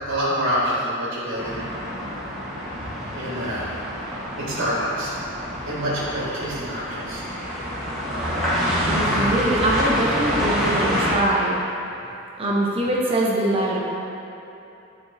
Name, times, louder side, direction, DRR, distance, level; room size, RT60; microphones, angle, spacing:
voice 1, 0.1-1.6 3.1-3.7 4.4-5.1 5.7-7.2, equal, 60° right, -7 dB, 1.4 m, -26 dB
sound 1, 1.3-11.1, equal, ahead, 1.2 m, -27 dB
voice 2, 8.9-11.6 12.4-13.8, right 1 dB, 25° right, -4 dB, 0.9 m, -23 dB
9.6 x 4.6 x 2.7 m, 2.9 s
head